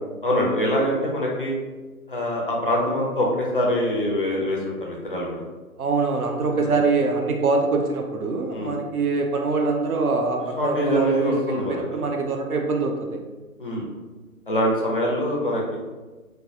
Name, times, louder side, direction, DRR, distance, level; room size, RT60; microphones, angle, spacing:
voice 1, 0.2-1.6 2.1-5.4 6.5-6.8 8.5-8.8 10.6-12.1 13.6-13.8 14.5-15.8, equal, 40° left, -3 dB, 0.5 m, -24 dB
voice 2, 5.8-13.2, right 3 dB, 75° right, 2 dB, 0.6 m, -24 dB
3.1 x 2.1 x 2.7 m, 1.3 s
figure-of-eight pair, 140°, 44 cm